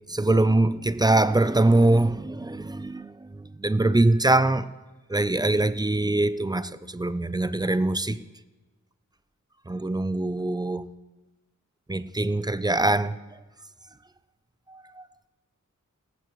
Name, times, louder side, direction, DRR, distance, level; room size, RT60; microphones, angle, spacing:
voice 1, 0.1-4.7 5.1-8.2 9.7-10.9 11.9-13.2 14.7-15.0, right 2 dB, 15° right, 0.5 m, -23 dB
18.0 x 15.0 x 3.2 m
wide cardioid pair, 65°, 32 cm